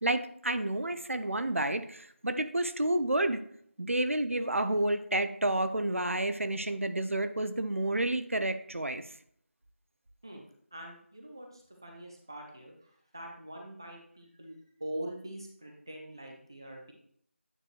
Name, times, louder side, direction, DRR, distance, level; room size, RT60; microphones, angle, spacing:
voice 1, 0.0-3.4 3.8-9.0, right 1 dB, 70° right, 10 dB, 0.8 m, -30 dB
voice 2, 10.7-14.5 14.8-16.9, right 1 dB, 20° right, 1 dB, 0.7 m, -43 dB
8.9 x 4.8 x 3.1 m, 0.64 s
figure-of-eight pair, 180°, 7 cm